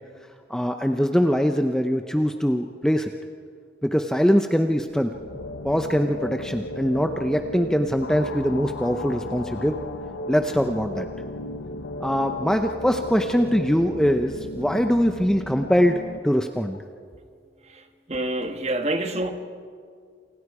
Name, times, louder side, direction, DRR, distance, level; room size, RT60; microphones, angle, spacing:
voice 1, 0.5-3.1 3.8-5.1 5.6-9.8 10.3-11.1 12.0-15.9 16.2-16.8, equal, 5° left, 5 dB, 0.6 m, -22 dB
sound 1, 4.6-16.2, left 1 dB, 90° left, 0.9 m, -35 dB
voice 2, 18.1-19.3, right 1 dB, 35° right, 6 dB, 1.4 m, -27 dB
28.0 x 28.0 x 4.9 m, 2.1 s
head